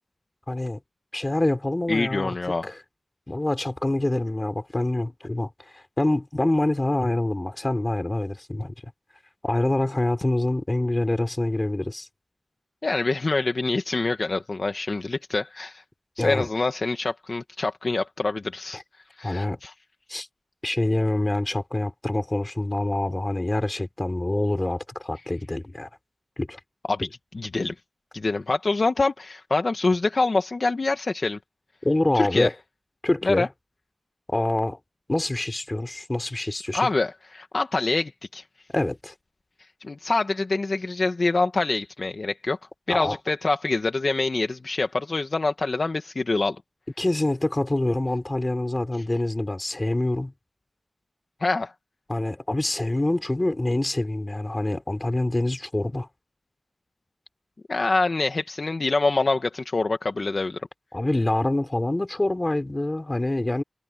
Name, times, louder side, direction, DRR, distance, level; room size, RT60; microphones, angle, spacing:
voice 1, 0.5-0.8 1.1-2.4 2.6-2.8 3.3-8.7 9.4-12.1 16.2-16.5 18.7-18.8 19.2-19.6 20.1-20.3 20.6-25.9 26.4-26.6 31.8-32.5 33.0-33.5 34.3-34.8 35.1-36.9 38.7-39.1 42.9-43.2 47.0-50.3 52.1-56.1 60.9-63.6, left 1 dB, 30° left, 3.9 m, -26 dB
voice 2, 1.9-2.7 12.8-15.8 16.2-18.8 19.2-19.7 26.9-27.1 27.3-27.7 28.1-31.4 32.1-32.5 33.2-33.5 36.7-38.4 39.8-42.6 42.9-46.6 51.4-51.7 57.7-60.6, left 3 dB, 60° left, 1.5 m, -25 dB
wide cardioid pair, 55°, 0 cm